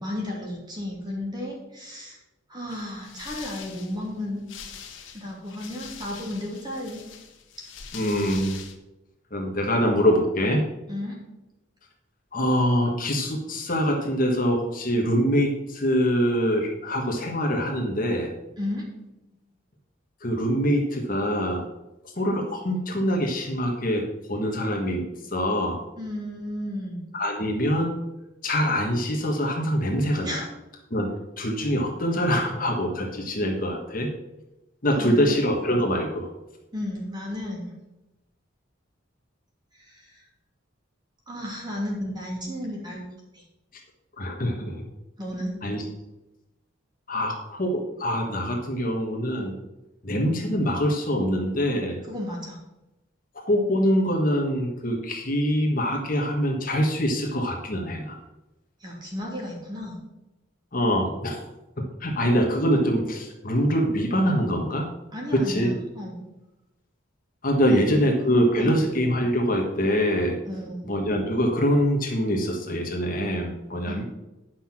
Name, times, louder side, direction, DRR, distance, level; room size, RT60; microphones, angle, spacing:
voice 1, 0.0-2.2 2.5-4.4 5.1-7.0 10.9-11.2 18.6-18.8 19.3-19.4 26.0-27.0 30.2-30.4 34.9-35.3 36.7-37.7 39.7-40.2 41.3-43.0 43.3-43.4 45.2-45.5 52.0-52.6 58.8-60.0 65.1-66.2 67.7-68.1 68.6-68.8 70.4-70.9 73.9-74.0, left 1 dB, 20° right, -2 dB, 2.7 m, -33 dB
sound 1, 2.7-8.8, left 7 dB, 75° left, 1.4 m, -43 dB
voice 2, 7.9-8.6 9.3-10.6 12.3-18.3 20.2-21.6 22.2-25.8 27.1-27.9 28.4-30.4 30.9-34.1 34.8-36.3 44.2-44.8 45.6-45.8 47.1-49.5 50.0-52.0 53.3-58.1 60.7-61.4 61.8-64.9 65.3-65.7 67.4-70.4 70.8-74.0, equal, 45° left, 1 dB, 1.5 m, -24 dB
9.7 x 6.0 x 6.0 m, 0.98 s
head